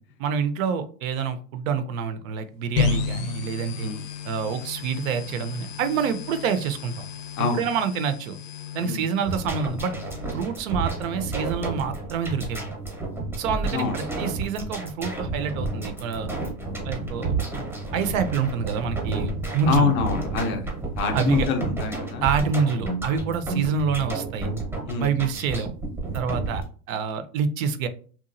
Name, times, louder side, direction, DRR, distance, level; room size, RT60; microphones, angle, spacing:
voice 1, 0.2-3.9 4.2-7.0 7.5-8.4 8.7-9.9 10.3-12.6 13.4-16.3 16.8-17.3 17.9-19.9 21.1-21.5 22.2-24.5 25.0-25.7 26.1-27.9, right 6 dB, 60° right, 10 dB, 0.5 m, -27 dB
sound 1, 2.8-10.4, left 6 dB, 80° left, 0.7 m, -33 dB
sound 2, 9.2-26.6, right 3 dB, 5° right, 0.7 m, -31 dB
voice 2, 19.7-20.7 21.0-22.2 23.1-23.2 24.8-25.1, left 5 dB, 30° left, 4 dB, 0.4 m, -25 dB
2.8 x 2.3 x 2.5 m, 0.41 s
supercardioid pair, 130°, 46 cm